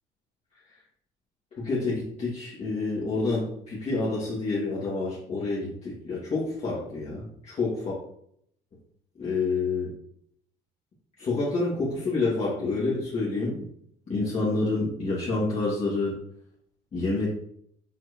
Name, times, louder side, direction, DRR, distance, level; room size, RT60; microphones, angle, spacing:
voice 1, 1.6-8.0 9.2-9.9 11.2-13.7 14.1-16.1 16.9-17.3, left 3 dB, 40° left, -8 dB, 2.5 m, -28 dB
7.8 x 4.6 x 3.2 m, 0.68 s
cardioid pair, 110°, 17 cm